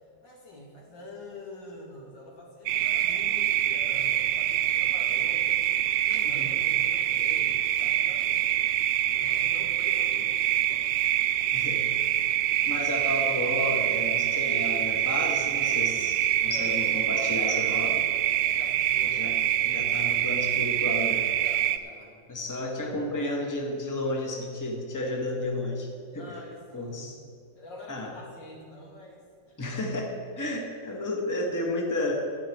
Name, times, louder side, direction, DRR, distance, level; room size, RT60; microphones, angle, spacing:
voice 1, 0.2-5.5 6.0-8.4 9.1-10.9 16.4-17.9 18.5-19.3 21.4-22.3 26.2-27.2 27.5-29.6, left 1 dB, 80° left, -2 dB, 3.1 m, -45 dB
sound 1, 2.7-21.8, right 12 dB, 80° right, 1.2 m, -25 dB
voice 2, 6.2-6.6 11.5-12.1 12.6-18.0 19.1-21.2 22.3-25.9 26.1-26.4 26.7-27.2 27.9-28.1 29.6-32.2, left 1 dB, 10° left, 0 dB, 1.4 m, -32 dB
13.0 x 5.9 x 9.2 m, 2.2 s
omnidirectional pair, 1.9 m